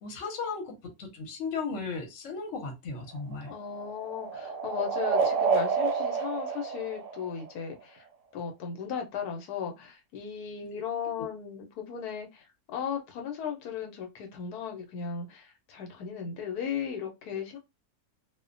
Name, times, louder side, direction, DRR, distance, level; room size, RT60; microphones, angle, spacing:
voice 1, 0.0-3.5, left 4 dB, 60° left, 1.0 m, -36 dB
sound 1, 3.0-7.7, right 5 dB, 65° right, 0.8 m, -29 dB
voice 2, 3.5-8.1 8.3-17.6, left 7 dB, 80° left, 1.1 m, -36 dB
2.5 x 2.1 x 2.4 m
omnidirectional pair, 1.6 m